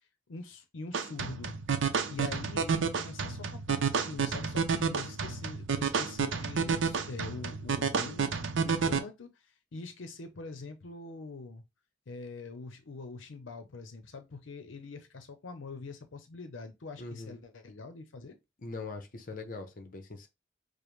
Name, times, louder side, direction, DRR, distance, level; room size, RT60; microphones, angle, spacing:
voice 1, 0.3-1.6 2.1-9.3 9.7-11.6 12.1-18.4, left 3 dB, 85° left, 0.6 m, -44 dB
sound 1, 0.9-9.0, right 5 dB, 80° right, 0.5 m, -30 dB
voice 2, 17.0-17.4 18.6-20.3, left 3 dB, 45° left, 0.7 m, -41 dB
5.0 x 2.1 x 3.1 m
head